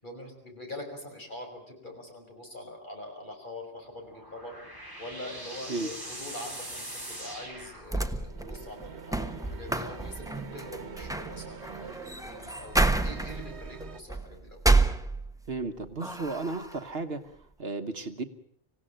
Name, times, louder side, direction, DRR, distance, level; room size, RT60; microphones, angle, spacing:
voice 1, 0.0-4.5 5.0-14.6, left 1 dB, 50° left, 2 dB, 6.0 m, -44 dB
sound 1, 3.8-8.4, right 1 dB, 20° right, 5.1 m, -42 dB
sound 2, 7.6-15.6 16.0-16.8, right 2 dB, 5° right, 1.1 m, -29 dB
sound 3, 8.2-14.0, right 6 dB, 85° right, 1.5 m, -46 dB
voice 2, 15.5-18.2, right 3 dB, 65° right, 7 dB, 1.5 m, -34 dB
26.0 x 17.0 x 9.1 m, 0.66 s
omnidirectional pair, 1.1 m